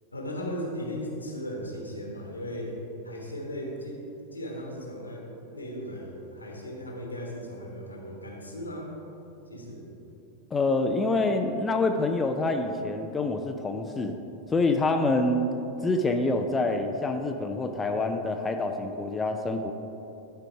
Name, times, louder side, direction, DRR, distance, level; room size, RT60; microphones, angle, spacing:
voice 1, 0.1-2.7 3.0-4.0 4.3-8.9 9.5-9.9, equal, 80° left, 0 dB, 1.4 m, -37 dB
voice 2, 10.5-14.2 14.5-15.5 15.8-19.7, left 2 dB, 15° left, 5 dB, 0.4 m, -26 dB
11.5 x 4.6 x 4.6 m, 2.9 s
figure-of-eight pair, 90°, 0 cm